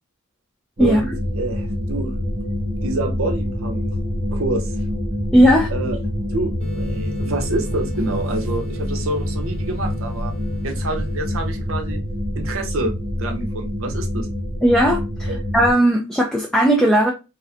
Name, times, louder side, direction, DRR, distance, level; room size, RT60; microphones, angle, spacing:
sound 1, 0.8-15.7, left 1 dB, 50° right, 0.8 m, -26 dB
voice 1, 1.4-2.1 2.8-4.0 4.3-4.9 5.7-6.0 6.3-10.3 10.6-12.0 12.3-12.9 13.2-14.3 15.3-15.4, right 2 dB, 80° right, 0.6 m, -27 dB
voice 2, 5.3-5.7 14.6-17.1, equal, 5° left, 0.3 m, -16 dB
sound 2, 6.6-11.6, left 1 dB, 30° left, 0.8 m, -36 dB
2.5 x 2.1 x 2.4 m
head